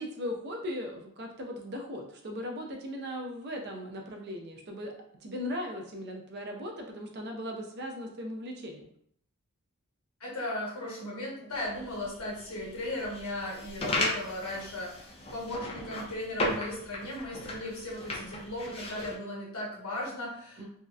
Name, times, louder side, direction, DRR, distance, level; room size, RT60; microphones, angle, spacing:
voice 1, 0.0-4.9 5.2-8.9 20.6-20.7, left 1 dB, 50° right, 2 dB, 0.4 m, -38 dB
voice 2, 10.2-20.7, left 1 dB, 80° left, -4 dB, 1.0 m, -37 dB
sound 1, 11.5-19.1, left 1 dB, 25° left, 0.4 m, -36 dB
2.7 x 2.0 x 2.3 m, 0.67 s
head